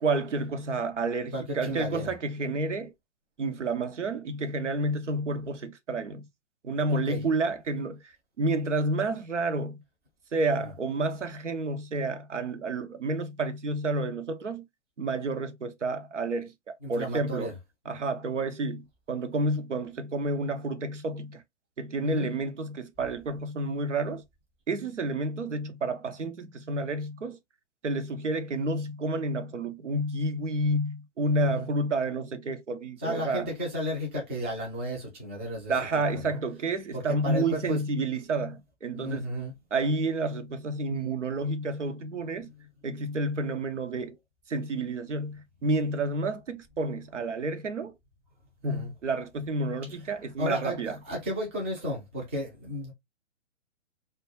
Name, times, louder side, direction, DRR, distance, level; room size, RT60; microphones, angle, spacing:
voice 1, 0.0-2.9 3.4-6.3 6.6-8.1 8.4-9.8 10.3-14.6 15.0-17.5 17.9-21.4 21.8-24.2 24.7-27.4 27.8-33.5 35.7-39.3 39.7-42.5 42.8-44.2 44.5-47.9 48.6-51.0, right 2 dB, 90° right, 0.5 m, -30 dB
voice 2, 1.3-2.1 6.9-7.2 10.6-10.7 16.8-17.6 22.0-22.3 31.4-31.7 33.0-35.7 36.1-36.4 36.9-37.8 38.9-39.5 48.7-48.9 50.4-52.9, equal, 10° right, 0.3 m, -33 dB
2.2 x 2.1 x 2.9 m
figure-of-eight pair, 115°, 35 cm